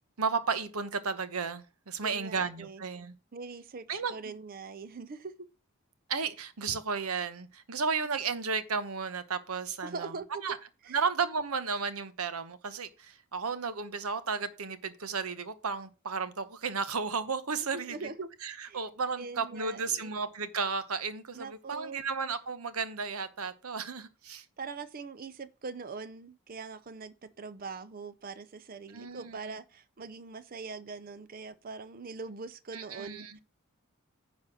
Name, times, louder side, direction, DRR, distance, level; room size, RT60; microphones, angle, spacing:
voice 1, 0.2-3.1 3.9-4.1 6.1-10.1 10.4-10.6 10.9-18.0 18.4-24.4 28.9-29.6 32.7-33.4, right 5 dB, 85° right, 1.0 m, -33 dB
voice 2, 2.0-2.8 3.3-5.3 9.8-10.4 10.8-11.0 17.7-18.3 18.6-18.8 19.2-20.1 21.3-22.0 24.6-33.4, right 4 dB, 40° right, 0.5 m, -42 dB
9.9 x 4.2 x 6.2 m
head